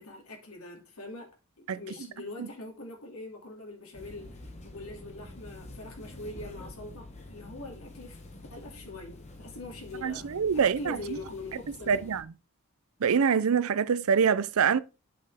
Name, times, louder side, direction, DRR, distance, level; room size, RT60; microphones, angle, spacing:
voice 1, 0.0-8.2 8.5-12.0, left 2 dB, 80° left, 2.5 m, -43 dB
sound 1, 3.9-12.2, left 1 dB, 30° left, 1.3 m, -47 dB
voice 2, 10.0-11.2 11.9-12.2 13.0-14.8, right 6 dB, 80° right, 0.5 m, -25 dB
7.8 x 5.3 x 3.5 m
head